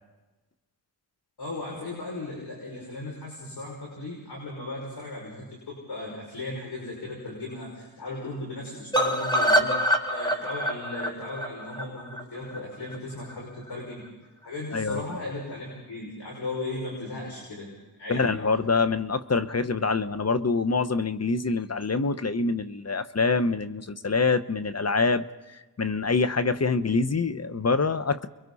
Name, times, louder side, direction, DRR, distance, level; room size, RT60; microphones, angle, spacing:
voice 1, 1.4-9.7 10.1-14.0 14.4-18.3, left 2 dB, 70° left, -3 dB, 6.2 m, -36 dB
sound 1, 8.9-12.9 13.3-13.4 13.7-13.8 14.1-14.2, equal, 10° left, 3.6 m, -25 dB
voice 2, 18.1-25.2 25.8-28.3, left 4 dB, 40° left, 11 dB, 1.0 m, -25 dB
30.0 x 22.5 x 4.2 m, 1.1 s
cardioid pair, 55°, 41 cm